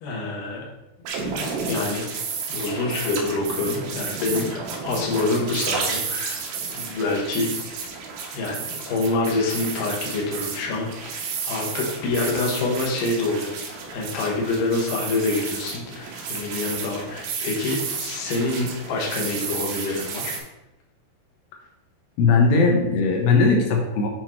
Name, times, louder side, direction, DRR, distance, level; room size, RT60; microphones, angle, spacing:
voice 1, 0.0-0.7 1.4-2.0 2.5-6.4 6.8-7.9 8.3-10.9 11.4-20.3, left 2 dB, 65° left, -2 dB, 2.4 m, -26 dB
sound 1, 1.1-20.4, right 5 dB, 80° right, 3.2 m, -32 dB
voice 2, 22.2-24.1, left 4 dB, 85° left, 1 dB, 3.0 m, -18 dB
8.4 x 3.0 x 4.4 m, 0.92 s
omnidirectional pair, 4.9 m